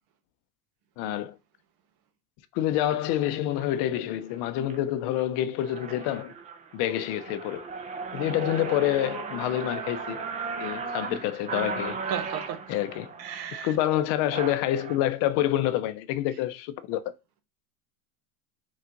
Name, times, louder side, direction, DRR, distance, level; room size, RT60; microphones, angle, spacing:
voice 1, 1.0-1.4 2.5-6.3 6.7-7.7 8.1-10.2 10.6-12.0 12.7-13.1 13.5-17.1, left 12 dB, 55° left, 0.6 m, -27 dB
sound 1, 2.7-2.9 3.6-3.8 4.3-4.8 5.2-5.3 5.5-15.0, right 5 dB, 20° right, 0.3 m, -36 dB
voice 2, 12.1-12.6 13.2-13.7, right 9 dB, 70° right, 1.0 m, -34 dB
4.5 x 2.4 x 3.7 m
supercardioid pair, 105°, 47 cm